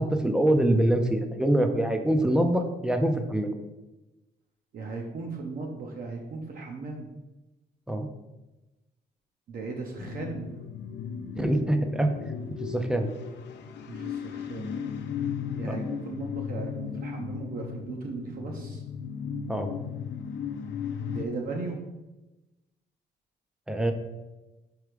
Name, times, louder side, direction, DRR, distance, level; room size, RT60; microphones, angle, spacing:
voice 1, 0.0-3.6 7.9-8.1 11.4-12.1 12.6-13.1 15.6-15.7 19.5-19.7 23.7-23.9, right 1 dB, 5° right, 6 dB, 0.4 m, -24 dB
voice 2, 4.7-7.1 9.5-10.5 13.9-14.7 15.5-18.8 21.1-21.9, right 3 dB, 50° right, 1 dB, 0.7 m, -37 dB
sound 1, 10.0-21.3, left 7 dB, 75° left, 0.6 m, -36 dB
4.7 x 4.3 x 5.0 m, 1.1 s
cardioid pair, 175°, 18 cm